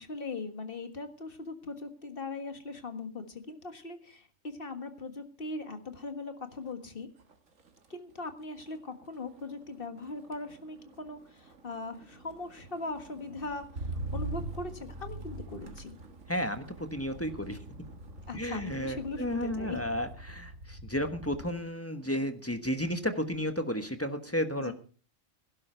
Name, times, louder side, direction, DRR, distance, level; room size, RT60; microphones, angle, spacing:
voice 1, 0.0-7.1 7.9-16.0 18.3-19.8 24.6-24.7, left 3 dB, 45° left, 7 dB, 1.8 m, -40 dB
Motor vehicle (road), 6.5-6.9 7.2-21.6 22.0-22.5, right 2 dB, 85° right, 2.1 m, -44 dB
voice 2, 16.3-16.6 16.9-17.6 18.3-24.7, equal, 10° left, 8 dB, 1.2 m, -32 dB
16.5 x 11.5 x 4.4 m, 0.39 s
omnidirectional pair, 1.3 m